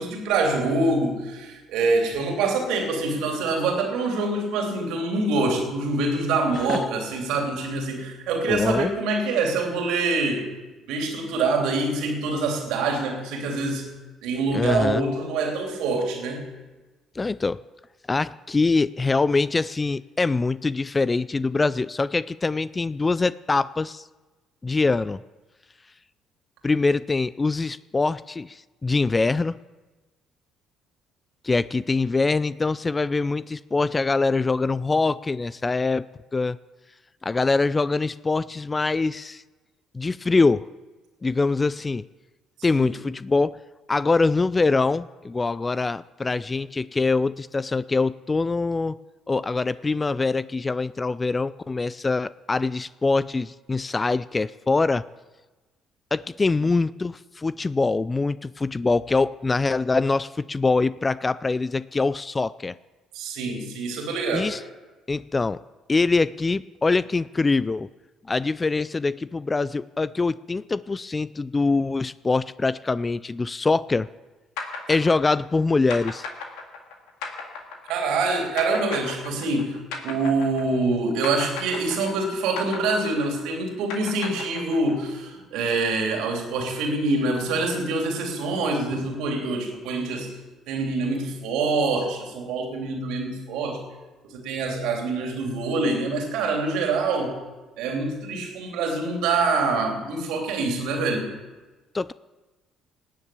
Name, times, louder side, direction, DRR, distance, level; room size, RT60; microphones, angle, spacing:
voice 1, 0.0-10.5 10.9-13.9 14.2-16.5 42.7-42.9 56.6-56.7 63.1-64.5 77.9-90.3 90.7-93.8 94.2-97.4 97.8-101.3, right 3 dB, 75° right, 2 dB, 3.0 m, -25 dB
voice 2, 8.5-8.9 14.5-15.0 17.2-17.6 18.1-24.1 24.6-25.2 26.6-29.6 31.4-36.1 36.3-36.6 37.2-39.4 39.9-40.7 41.2-42.0 42.6-43.6 43.9-49.0 49.3-55.1 56.1-62.7 64.3-64.6 65.1-65.6 65.9-67.9 68.3-74.1 74.9-76.3 101.9-102.1, left 3 dB, 25° left, 18 dB, 0.4 m, -24 dB
sound 1, 74.6-80.9 81.2-85.1, left 4 dB, 75° left, 2.1 m, -35 dB
19.0 x 7.1 x 8.4 m, 1.2 s
hypercardioid pair, 55°, 0 cm